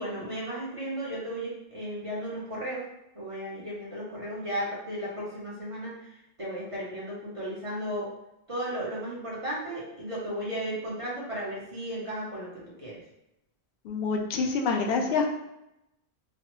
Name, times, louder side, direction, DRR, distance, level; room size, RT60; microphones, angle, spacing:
voice 1, 0.0-2.9 3.1-8.1 8.5-13.0, equal, 30° right, -6 dB, 0.9 m, -35 dB
voice 2, 13.8-15.3, left 4 dB, 65° left, 2 dB, 0.7 m, -26 dB
3.1 x 2.0 x 3.0 m, 0.86 s
omnidirectional pair, 1.1 m